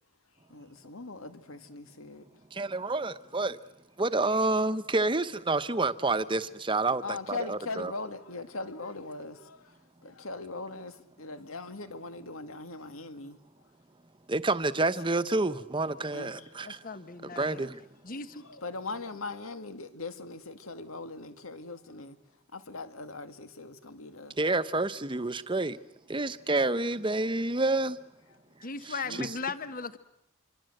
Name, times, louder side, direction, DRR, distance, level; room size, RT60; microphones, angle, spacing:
voice 1, 0.5-2.3 7.0-13.4 14.8-14.9 16.1-16.5 17.4-17.7 18.4-22.2 22.5-24.4 29.0-29.2, left 3 dB, 85° left, 2.2 m, -40 dB
voice 2, 2.5-3.6 4.0-7.9 14.3-16.8 17.4-17.8 24.4-25.8 26.1-28.0 28.8-29.3, right 2 dB, 25° right, 1.0 m, -29 dB
voice 3, 16.6-17.6 18.0-18.4 28.6-30.0, left 4 dB, 40° left, 1.2 m, -37 dB
26.5 x 24.5 x 7.9 m
head